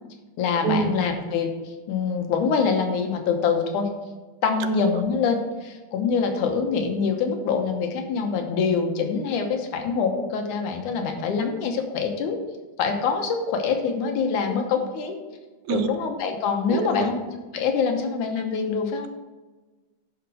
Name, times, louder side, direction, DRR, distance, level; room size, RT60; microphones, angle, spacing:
voice 1, 0.4-3.9 4.4-12.4 12.8-15.2 15.7-17.2 17.5-19.1, left 5 dB, 80° left, 3 dB, 2.5 m, -25 dB
voice 2, 16.7-17.1, right 7 dB, 80° right, 10 dB, 2.0 m, -25 dB
11.0 x 5.1 x 4.8 m, 1.3 s
omnidirectional pair, 3.4 m